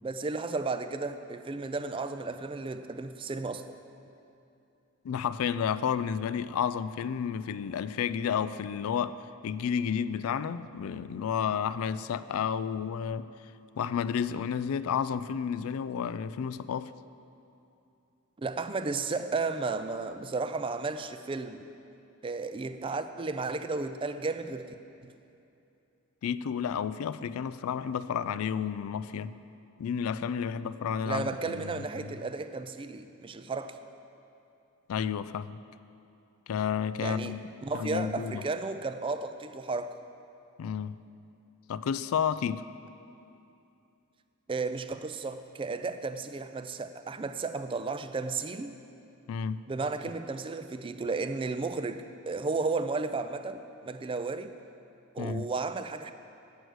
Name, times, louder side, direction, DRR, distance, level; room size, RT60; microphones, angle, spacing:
voice 1, 0.0-3.7 18.4-21.6 22.2-24.7 25.0-25.1 31.1-33.8 37.0-37.4 37.6-40.0 44.5-48.7 49.7-54.5 55.2-56.1, right 3 dB, 25° right, 10 dB, 0.3 m, -33 dB
voice 2, 5.0-13.3 13.8-16.9 26.2-29.3 29.8-32.1 34.9-35.6 36.5-37.4 37.7-38.4 40.6-41.0 41.7-42.6 49.3-49.6 55.2-55.5, left 7 dB, 75° left, 15 dB, 0.3 m, -31 dB
9.3 x 7.9 x 6.2 m, 2.7 s
head